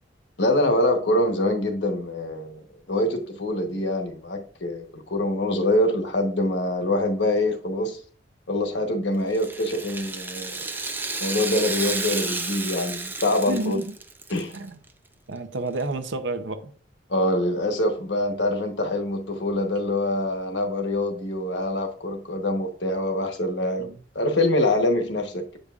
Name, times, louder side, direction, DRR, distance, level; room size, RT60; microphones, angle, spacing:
voice 1, 0.4-2.6 2.9-8.0 8.5-10.7 11.2-13.8 14.3-14.5 17.1-25.5, left 1 dB, 75° left, 1.1 m, -25 dB
Rattle (instrument), 9.3-14.6 14.9-15.0 15.8-15.9, right 3 dB, 10° right, 0.4 m, -31 dB
voice 2, 13.5-13.9 14.5-14.8 15.3-16.7 23.8-24.0, right 2 dB, 90° right, 0.8 m, -30 dB
8.1 x 5.2 x 2.4 m
head